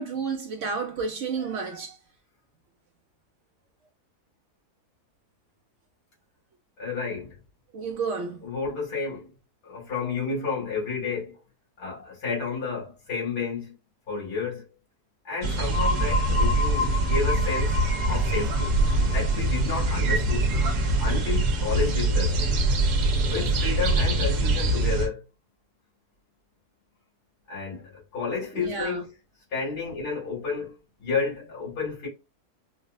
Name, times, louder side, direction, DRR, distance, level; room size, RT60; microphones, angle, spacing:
voice 1, 0.0-2.0 7.7-8.4 28.5-29.0, right 5 dB, 65° right, 0.8 m, -31 dB
voice 2, 6.8-7.3 8.4-9.3 9.6-11.4 11.8-13.7 14.1-14.6 15.3-20.5 21.0-22.5 23.3-25.2 27.5-29.1 29.5-30.7 31.0-32.1, left 5 dB, 80° left, 2.7 m, -31 dB
sound 1, 15.4-25.1, right 2 dB, 85° right, 1.4 m, -24 dB
sound 2, 15.7-21.4, left 5 dB, 45° left, 1.1 m, -32 dB
4.8 x 2.1 x 2.5 m
omnidirectional pair, 1.6 m